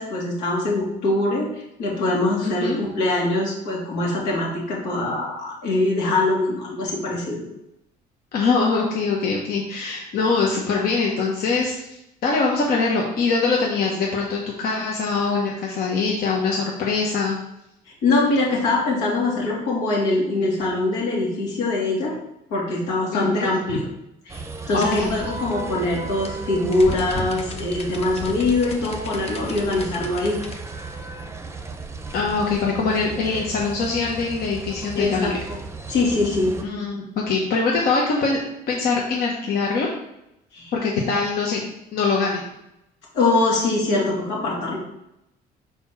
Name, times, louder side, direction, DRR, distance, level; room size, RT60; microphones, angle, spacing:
voice 1, 0.0-7.4 18.0-22.1 22.5-23.9 24.3-30.4 35.0-35.6 35.9-36.5 40.5-40.7 43.1-44.8, left 2 dB, 90° left, -4 dB, 2.5 m, -23 dB
voice 2, 2.4-2.8 8.3-17.4 23.1-23.5 24.7-25.3 32.1-35.3 36.6-39.9 40.7-41.7 41.9-42.4, left 4 dB, 65° left, -2 dB, 1.1 m, -23 dB
sound 1, 24.3-36.6, right 3 dB, 15° right, 0.6 m, -35 dB
sound 2, 24.8-30.6, left 3 dB, 40° left, 0.9 m, -36 dB
4.4 x 4.3 x 5.8 m, 0.85 s
cardioid pair, 110°, 17 cm